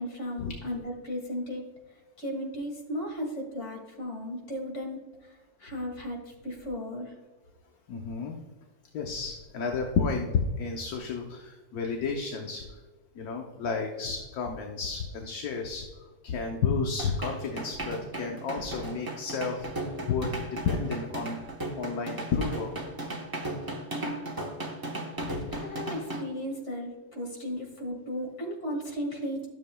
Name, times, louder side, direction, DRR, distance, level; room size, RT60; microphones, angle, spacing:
voice 1, 0.0-1.7 2.2-5.3 5.6-7.1 25.5-29.5, equal, 40° left, 0 dB, 2.2 m, -35 dB
voice 2, 7.9-8.4 8.9-10.3 10.5-12.7 13.2-15.9 16.2-20.4 20.6-21.4 21.8-22.7 25.2-25.5, left 5 dB, 65° left, 2 dB, 1.2 m, -32 dB
sound 1, 17.0-26.2, right 1 dB, 20° right, 0.6 m, -36 dB
13.0 x 7.1 x 2.2 m, 1.3 s
omnidirectional pair, 1.9 m